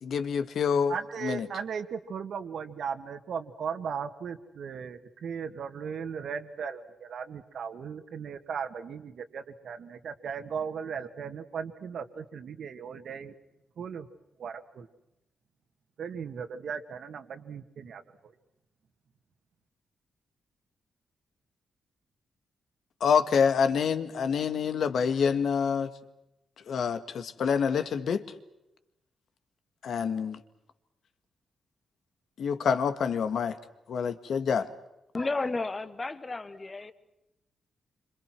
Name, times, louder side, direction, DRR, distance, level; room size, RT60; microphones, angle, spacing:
voice 1, 0.0-0.9 1.2-1.5 23.0-25.9 26.7-28.2 29.8-30.4 32.4-33.6 33.9-34.7, left 6 dB, 65° left, 11 dB, 1.9 m, -27 dB
voice 2, 0.9-13.3 13.8-14.1 14.4-14.9 16.0-18.0, right 6 dB, 60° right, 9 dB, 2.1 m, -37 dB
voice 3, 35.1-36.9, left 3 dB, 20° left, 13 dB, 1.4 m, -32 dB
28.0 x 26.0 x 6.1 m, 0.90 s
wide cardioid pair, 150°, 0 cm